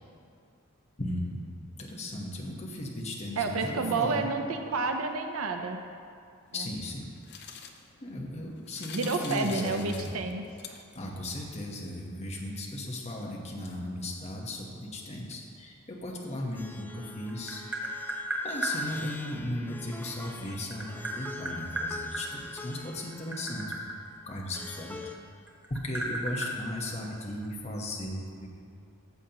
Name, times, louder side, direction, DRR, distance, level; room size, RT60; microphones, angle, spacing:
voice 1, 1.0-1.5 1.8-4.3 6.5-7.0 8.0-10.2 10.9-17.6 18.4-23.8 24.3-25.0 25.7-28.6, left 1 dB, 30° left, -2 dB, 1.1 m, -36 dB
voice 2, 3.4-5.8 6.6-6.7 8.9-10.4, right 3 dB, 90° right, 5 dB, 0.6 m, -30 dB
sound 1, 6.5-11.2, left 6 dB, 55° left, 0.6 m, -47 dB
Plucked string instrument, 16.5-25.2, left 3 dB, 10° left, 0.4 m, -47 dB
Tap, 16.9-18.8 20.1-22.3 23.0-25.2 25.5-27.5, right 1 dB, 10° right, 1.0 m, -34 dB
14.0 x 7.3 x 2.9 m, 2.3 s
head